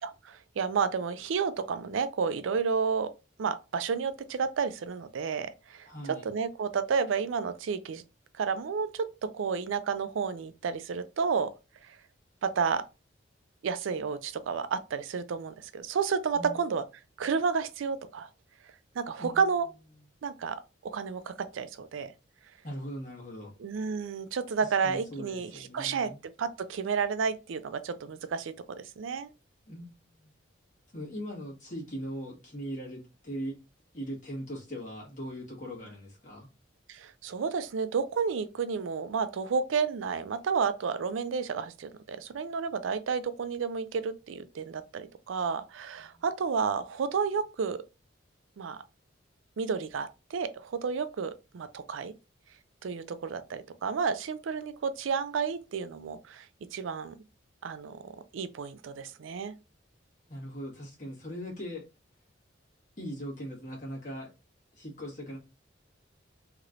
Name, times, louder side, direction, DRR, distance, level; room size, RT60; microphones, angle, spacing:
voice 1, 0.0-3.1 3.4-5.9 6.2-8.0 8.4-11.5 12.4-12.8 13.6-16.8 17.2-18.3 19.0-19.7 20.2-22.1 23.6-26.1 26.4-29.3 36.9-47.8 48.6-48.8 49.6-52.1 52.8-56.5 56.7-57.1 57.6-59.5, right 5 dB, 85° right, 0.4 m, -31 dB
voice 2, 5.8-6.3 16.3-16.6 19.2-19.4 22.6-23.5 24.6-26.2 29.7-30.3 30.9-33.5 33.9-36.5 46.0-46.2 60.3-61.8 63.0-64.3 64.7-65.4, equal, 40° left, 1.4 m, -40 dB
3.1 x 2.9 x 2.4 m
head